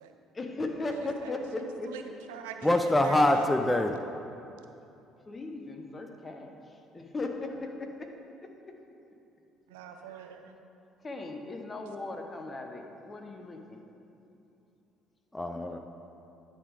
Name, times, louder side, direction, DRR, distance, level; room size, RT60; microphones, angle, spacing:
voice 1, 0.3-1.9 5.3-8.1 11.0-13.8, left 2 dB, 30° left, 3 dB, 0.8 m, -37 dB
voice 2, 1.0-3.5 9.7-10.5, right 7 dB, 75° right, 6 dB, 0.4 m, -45 dB
voice 3, 2.6-4.0 15.3-15.8, left 1 dB, 15° left, 6 dB, 0.4 m, -24 dB
9.6 x 3.6 x 4.9 m, 2.7 s
figure-of-eight pair, 50°, 0 cm